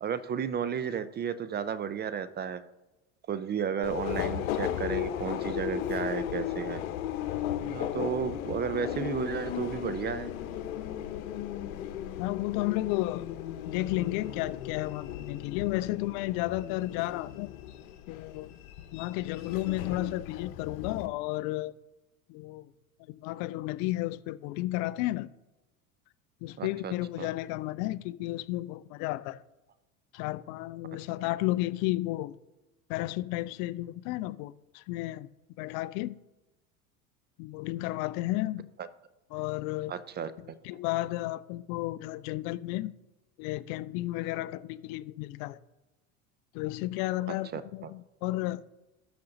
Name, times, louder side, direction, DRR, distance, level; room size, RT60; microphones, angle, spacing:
voice 1, 0.0-2.6 3.3-6.8 7.6-10.3 26.6-27.3 38.8-38.9 39.9-40.6 47.3-47.9, right 7 dB, 25° right, 0.5 m, -33 dB
Subway metro underground, 3.8-21.1, left 11 dB, 75° left, 1.0 m, -36 dB
voice 2, 12.2-13.3 13.7-17.5 18.1-18.5 18.9-21.7 22.3-22.7 23.1-25.3 26.4-29.4 30.1-32.4 32.9-35.3 35.6-36.1 37.4-38.7 39.3-39.9 40.6-42.9 43.4-45.6 46.5-48.6, left 17 dB, 55° left, 0.5 m, -32 dB
12.5 x 5.2 x 3.9 m
hypercardioid pair, 95°, 42 cm